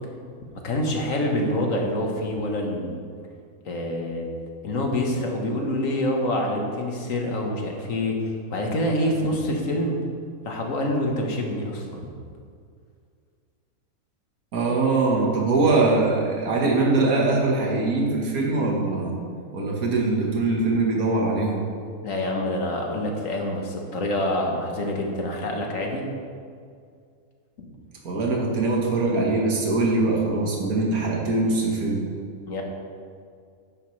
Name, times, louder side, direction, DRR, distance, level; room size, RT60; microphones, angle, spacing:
voice 1, 0.6-3.0 3.6-4.3 4.6-10.0 10.4-12.0 22.0-26.1 27.6-27.7 32.5-32.6, left 1 dB, 65° left, 1 dB, 1.7 m, -26 dB
voice 2, 14.5-19.2 19.5-21.7 28.0-32.0, right 3 dB, 75° right, -2 dB, 1.9 m, -22 dB
11.0 x 9.5 x 3.2 m, 2.2 s
omnidirectional pair, 1.5 m